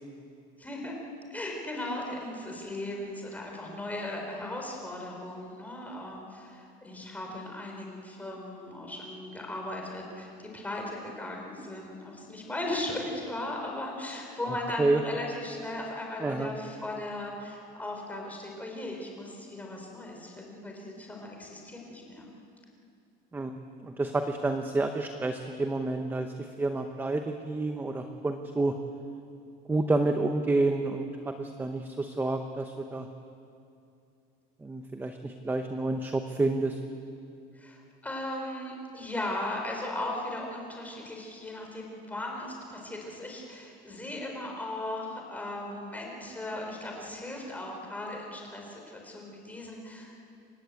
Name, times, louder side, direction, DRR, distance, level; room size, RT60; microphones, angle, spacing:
voice 1, 0.6-0.9 1.3-22.3 37.5-50.1, left 1 dB, 5° left, 0 dB, 4.2 m, -37 dB
voice 2, 16.2-16.5 23.3-23.5 23.8-28.7 29.7-31.1 31.4-33.1 34.6-36.8, right 2 dB, 10° right, 6 dB, 0.9 m, -29 dB
28.0 x 16.0 x 8.4 m, 2.6 s
cardioid pair, 150°, 21 cm